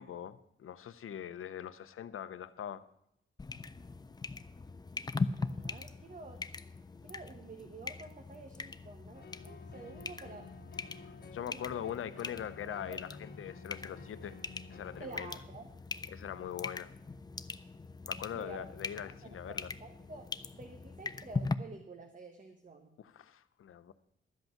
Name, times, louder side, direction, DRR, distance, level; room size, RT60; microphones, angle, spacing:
voice 1, 0.0-2.8 11.3-14.3 14.7-15.4 16.1-16.9 18.1-19.7 23.0-23.9, left 9 dB, 80° left, 13 dB, 0.7 m, -42 dB
sound 1, 3.4-21.5, left 3 dB, 20° left, 0.4 m, -41 dB
voice 2, 5.4-6.4 7.0-10.5 11.4-11.6 12.6-13.0 15.0-15.7 18.3-18.6 19.0-23.0, right 3 dB, 40° right, 5 dB, 1.0 m, -50 dB
sound 2, 9.1-15.1, left 5 dB, 50° left, 1.4 m, -53 dB
12.5 x 8.0 x 5.9 m, 0.77 s
wide cardioid pair, 125°, 21 cm